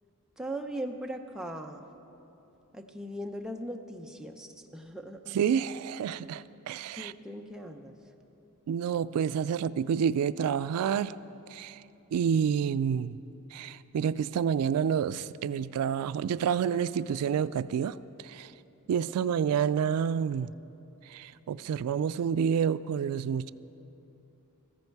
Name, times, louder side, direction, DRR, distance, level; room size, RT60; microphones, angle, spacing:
voice 1, 0.4-1.9 2.7-5.4 7.0-8.0 19.1-19.4, right 1 dB, 5° right, 0.7 m, -39 dB
voice 2, 5.3-7.1 8.7-11.2 11.5-11.8 12.1-13.2 13.5-18.5 18.9-20.5 21.0-23.5, right 7 dB, 80° right, 0.3 m, -29 dB
16.0 x 14.5 x 4.6 m
head